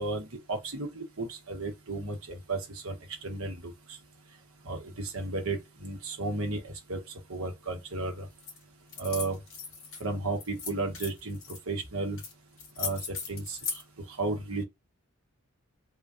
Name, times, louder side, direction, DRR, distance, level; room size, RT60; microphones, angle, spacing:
voice 1, 0.0-3.0 3.2-3.7 4.7-7.0 7.3-8.2 9.0-9.4 10.0-11.4 11.7-12.2 12.8-13.0 13.3-13.6 14.2-14.6, right 3 dB, 90° right, 1.0 m, -33 dB
sound 1, 8.4-8.6 8.9-10.0 10.4-11.6 12.2-12.3 12.6-13.8, left 5 dB, 75° left, 2.0 m, -37 dB
3.7 x 2.3 x 2.5 m
head